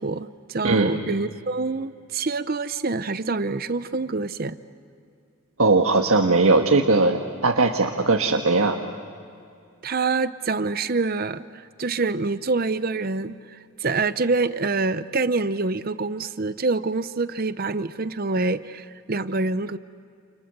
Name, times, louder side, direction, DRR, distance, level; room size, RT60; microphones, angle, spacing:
voice 1, 0.0-4.6 9.8-19.8, right 3 dB, 40° right, 13 dB, 0.7 m, -26 dB
voice 2, 0.6-1.0 5.6-8.8, right 3 dB, 75° right, 1 dB, 1.5 m, -19 dB
30.0 x 29.0 x 6.8 m, 2.5 s
head